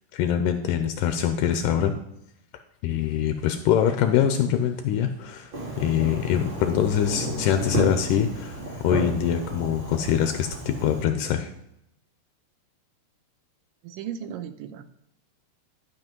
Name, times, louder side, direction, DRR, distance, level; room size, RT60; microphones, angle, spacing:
voice 1, 0.1-1.9 2.8-5.5 5.8-11.5, left 9 dB, 80° left, 7 dB, 2.2 m, -24 dB
sound 1, 2.9-8.0, left 3 dB, 25° left, 3.7 m, -39 dB
Fireworks, 5.5-11.0, right 2 dB, 35° right, 3.8 m, -33 dB
voice 2, 13.8-14.8, right 9 dB, 90° right, 9 dB, 2.4 m, -36 dB
12.0 x 5.7 x 5.3 m, 0.78 s
omnidirectional pair, 3.9 m